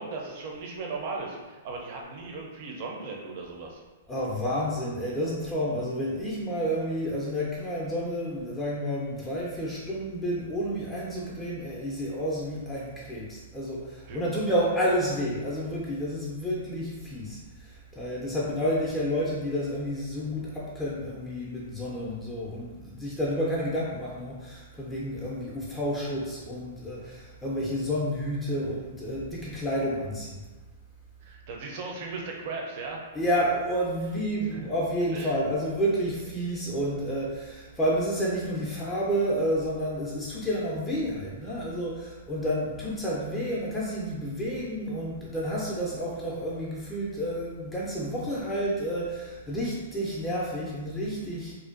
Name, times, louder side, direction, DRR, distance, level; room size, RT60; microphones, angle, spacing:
voice 1, 0.0-3.8 14.1-14.2 31.2-33.0 34.5-34.7 35.1-35.4 36.0-36.3, right 3 dB, 50° right, -1 dB, 0.5 m, -37 dB
voice 2, 4.1-17.4 18.0-30.3 33.1-51.5, equal, 10° left, -6 dB, 0.4 m, -30 dB
2.5 x 2.2 x 2.4 m, 1.2 s
hypercardioid pair, 150°, 0 cm